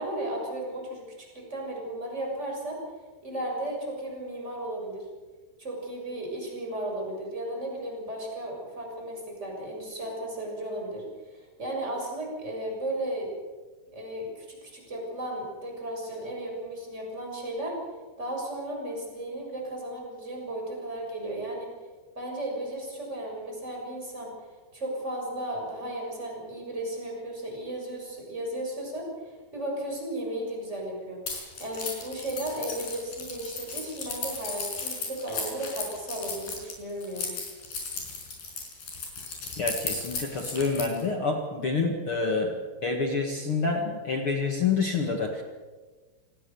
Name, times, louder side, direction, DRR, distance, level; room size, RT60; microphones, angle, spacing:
voice 1, 0.0-2.8 3.2-5.1 5.6-11.0 11.3-13.3 13.9-17.8 18.2-21.7 22.1-24.3 24.7-31.2 31.6-37.3, right 1 dB, 15° right, 0 dB, 6.8 m, -35 dB
Keys jangling, 31.3-41.0, left 4 dB, 50° left, 6.6 m, -35 dB
voice 2, 39.6-42.6 42.8-45.4, left 4 dB, 80° left, 2 dB, 1.2 m, -27 dB
27.5 x 19.0 x 7.1 m, 1.4 s
omnidirectional pair, 5.7 m